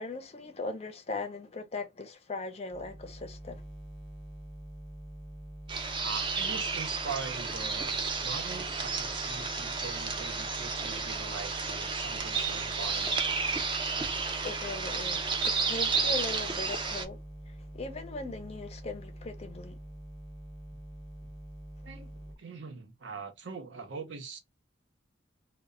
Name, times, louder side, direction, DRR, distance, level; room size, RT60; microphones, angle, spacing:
voice 1, 0.0-3.6 14.4-17.2 17.5-19.8, left 2 dB, 35° left, 0.4 m, -39 dB
sound 1, 2.7-22.4, right 1 dB, ahead, 0.8 m, -46 dB
sound 2, 5.7-17.0, right 4 dB, 25° right, 0.4 m, -32 dB
voice 2, 6.0-13.2 21.8-24.4, right 5 dB, 75° right, 0.6 m, -42 dB
2.1 x 2.0 x 3.5 m
head